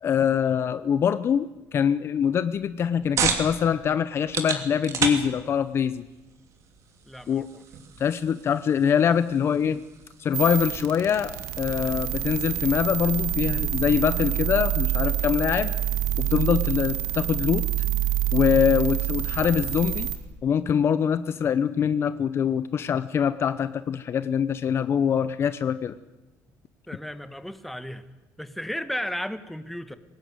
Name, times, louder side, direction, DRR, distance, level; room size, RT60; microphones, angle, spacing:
voice 1, 0.0-6.0 7.3-7.5 8.0-9.8 10.2-15.7 16.2-17.7 18.3-20.1 20.4-25.9, left 8 dB, 40° left, 13 dB, 0.7 m, -24 dB
sound 1, 2.5-17.7, right 6 dB, 50° right, 2.9 m, -36 dB
voice 2, 7.1-7.6 26.9-28.0 28.4-30.0, equal, ahead, 11 dB, 1.2 m, -34 dB
sound 2, 10.3-20.2, right 12 dB, 75° right, 2.4 m, -27 dB
22.0 x 18.5 x 9.5 m, 1.1 s
cardioid pair, 145°, 7 cm